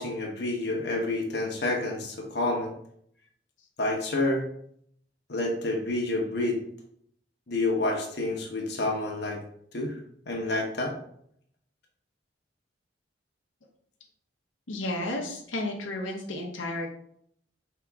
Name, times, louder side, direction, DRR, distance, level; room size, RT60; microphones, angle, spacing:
voice 1, 0.0-2.7 3.8-4.4 5.3-6.6 7.5-9.4 9.7-10.0 10.3-10.9, left 2 dB, 60° left, 1 dB, 0.8 m, -28 dB
voice 2, 14.7-16.9, left 1 dB, 90° left, 1 dB, 0.8 m, -32 dB
4.8 x 2.9 x 3.4 m, 0.68 s
head